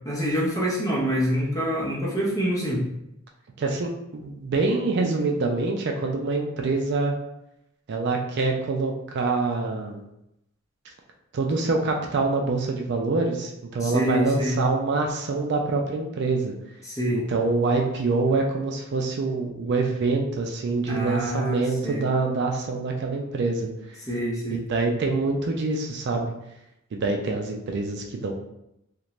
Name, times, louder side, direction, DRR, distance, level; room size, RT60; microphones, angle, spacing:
voice 1, 0.0-2.9 13.8-14.6 16.8-17.2 20.9-22.0 24.1-24.6, equal, 15° left, -4 dB, 0.6 m, -26 dB
voice 2, 3.6-7.1 7.9-10.0 11.3-16.5 17.1-24.0 24.7-26.3 26.9-28.3, right 3 dB, 55° right, 2 dB, 0.4 m, -25 dB
2.5 x 2.1 x 2.9 m, 0.82 s
head